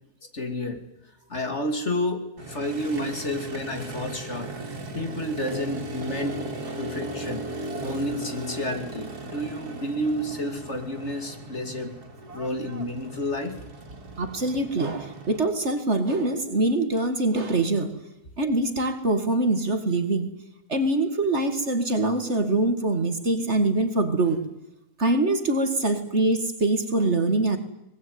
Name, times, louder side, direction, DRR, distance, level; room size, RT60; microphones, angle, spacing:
voice 1, 0.3-0.9 1.3-4.5 4.9-6.4 6.8-12.0 12.3-13.6, left 1 dB, 45° left, 6 dB, 3.0 m, -30 dB
Motorcycle, 2.4-15.4, right 2 dB, 90° right, 3.0 m, -37 dB
voice 2, 14.2-17.9 18.4-20.3 20.7-24.4 25.0-27.6, right 2 dB, 45° right, 8 dB, 2.4 m, -24 dB
23.0 x 21.0 x 9.6 m, 0.88 s
omnidirectional pair, 1.6 m